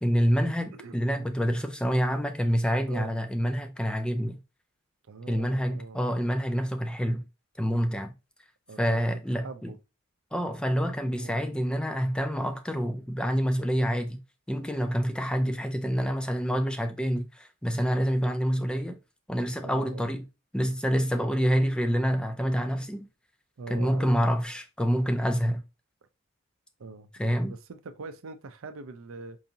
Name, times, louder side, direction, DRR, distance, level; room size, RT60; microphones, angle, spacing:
voice 1, 0.0-4.4 5.3-7.2 7.6-8.1 8.8-9.7 10.3-19.0 19.3-20.3 20.5-23.1 23.7-25.6 27.2-27.5, equal, 5° left, 0.4 m, -27 dB
voice 2, 0.7-1.3 2.9-3.2 5.1-6.0 8.7-9.0 9.4-9.8 11.2-11.4 19.6-20.1 23.6-24.2 26.8-29.4, right 4 dB, 70° right, 0.5 m, -43 dB
4.7 x 2.7 x 2.7 m
head